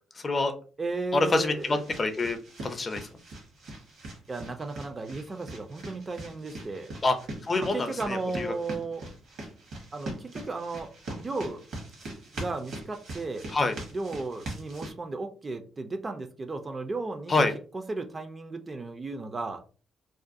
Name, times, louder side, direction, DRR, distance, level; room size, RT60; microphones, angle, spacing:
voice 1, 0.2-0.5 1.1-3.1 7.0-7.2 7.4-8.5 13.5-13.7 17.3-17.5, left 3 dB, 35° left, 7 dB, 0.4 m, -26 dB
voice 2, 0.8-1.8 4.3-6.9 7.6-9.0 9.9-11.6 12.1-13.5 13.9-17.4 17.7-19.6, right 3 dB, 30° right, 6 dB, 0.3 m, -35 dB
sound 1, 0.9-14.9, right 2 dB, 70° right, 1.0 m, -42 dB
2.4 x 2.2 x 2.5 m, 0.38 s
cardioid pair, 90°, 0 cm